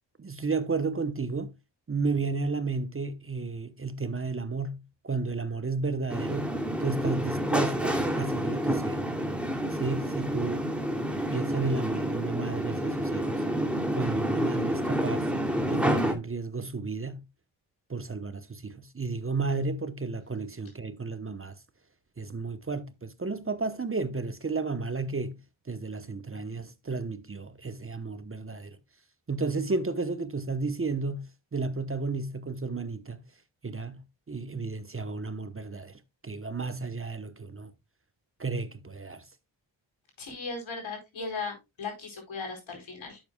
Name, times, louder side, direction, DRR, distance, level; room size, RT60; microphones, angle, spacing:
voice 1, 0.2-1.5 1.9-9.0 9.7-10.7 11.3-13.4 13.9-15.3 15.7-17.3 17.9-21.5 22.2-25.4 25.7-28.8 29.3-33.2 33.6-37.7 38.4-39.3, right 4 dB, 25° right, 1.0 m, -33 dB
sound 1, 6.1-16.1, equal, ahead, 2.7 m, -29 dB
voice 2, 40.2-43.2, left 4 dB, 75° left, 4.6 m, -37 dB
10.5 x 7.4 x 2.3 m
cardioid pair, 50°, 47 cm